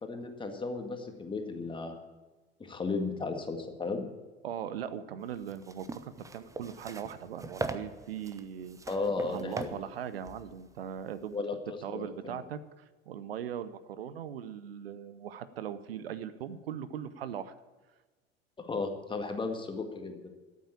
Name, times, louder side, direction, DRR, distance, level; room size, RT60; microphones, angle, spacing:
voice 1, 0.0-2.0 2.6-4.1 8.9-9.7 11.3-12.4 18.6-20.2, left 3 dB, 15° left, 5 dB, 1.9 m, -35 dB
voice 2, 4.4-8.8 9.2-11.4 11.8-17.5, right 9 dB, 65° right, 14 dB, 0.8 m, -40 dB
sound 1, 5.3-11.3, right 3 dB, 10° right, 0.8 m, -41 dB
13.0 x 8.4 x 8.8 m, 1.2 s
figure-of-eight pair, 75°, 31 cm